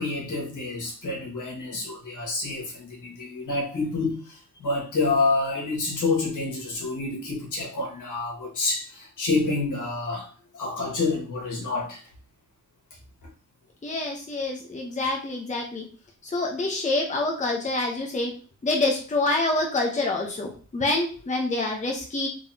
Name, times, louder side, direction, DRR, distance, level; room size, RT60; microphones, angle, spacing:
voice 1, 0.0-10.3 10.5-12.0, left 3 dB, 70° left, -2 dB, 1.8 m, -28 dB
voice 2, 13.8-15.8 16.2-18.3 18.6-22.3, left 2 dB, 25° left, 0 dB, 0.9 m, -26 dB
3.8 x 3.5 x 2.9 m, 0.38 s
wide cardioid pair, 110°, 31 cm